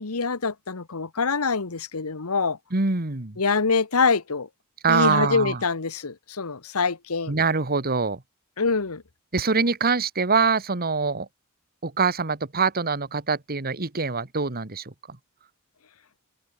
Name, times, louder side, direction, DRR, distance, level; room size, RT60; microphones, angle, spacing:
voice 1, 0.0-2.6 3.4-4.5 4.9-7.3 8.6-9.0, left 4 dB, 85° left, 1.2 m, -25 dB
voice 2, 2.7-3.4 4.8-5.6 7.3-8.2 9.3-11.3 11.8-14.9, right 4 dB, 45° right, 1.8 m, -24 dB
head